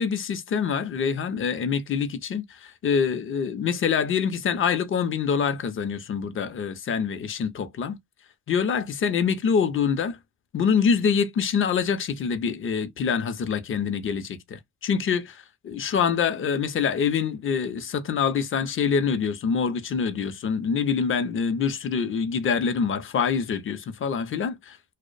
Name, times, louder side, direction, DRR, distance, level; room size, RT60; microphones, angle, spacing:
voice 1, 0.0-8.0 8.5-10.2 10.5-24.9, left 6 dB, 45° left, 0.5 m, -25 dB
2.4 x 2.0 x 2.4 m
cardioid pair, 90°, 30 cm